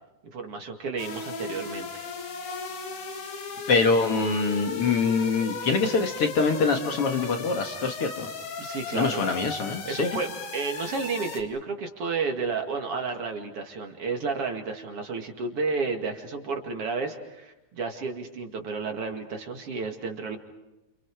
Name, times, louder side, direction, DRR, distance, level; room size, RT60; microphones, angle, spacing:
voice 1, 0.3-2.0 8.6-9.3 9.9-20.4, right 4 dB, 50° right, 3 dB, 2.9 m, -32 dB
sound 1, 1.0-11.4, left 4 dB, 85° left, 3.9 m, -36 dB
voice 2, 3.7-8.3 8.9-10.2, left 4 dB, 55° left, 4 dB, 2.3 m, -24 dB
29.5 x 28.5 x 4.8 m, 0.97 s
omnidirectional pair, 3.4 m